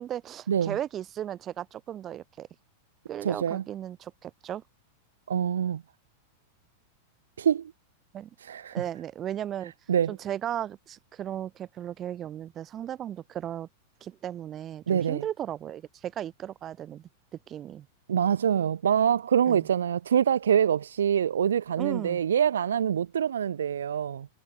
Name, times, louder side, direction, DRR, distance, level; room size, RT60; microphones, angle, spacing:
voice 1, 0.0-2.5 3.1-4.6 8.1-8.3 8.7-9.7 10.1-13.7 14.0-17.9 19.5-19.7 21.8-22.2, right 11 dB, 30° right, 5.2 m, -36 dB
voice 2, 3.2-3.6 5.3-5.8 7.4-7.7 8.4-8.7 9.9-10.1 14.9-15.2 18.1-24.3, right 8 dB, 70° right, 1.1 m, -25 dB
figure-of-eight pair, 95°, 0 cm